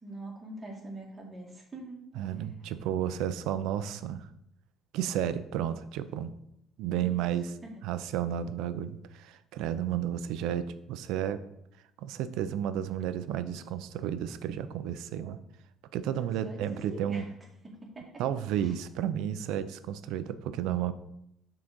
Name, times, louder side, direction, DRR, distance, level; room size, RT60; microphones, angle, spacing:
voice 1, 0.0-2.1 2.3-2.7 6.9-7.8 16.1-17.4 17.7-18.2 18.6-18.8, right 1 dB, 20° right, -2 dB, 2.0 m, -45 dB
voice 2, 2.2-4.3 4.9-6.3 6.8-7.5 7.8-11.4 12.0-15.4 15.9-17.2 18.2-20.9, right 10 dB, 85° right, 12 dB, 0.5 m, -32 dB
6.0 x 3.9 x 6.2 m, 0.79 s
cardioid pair, 125°, 0 cm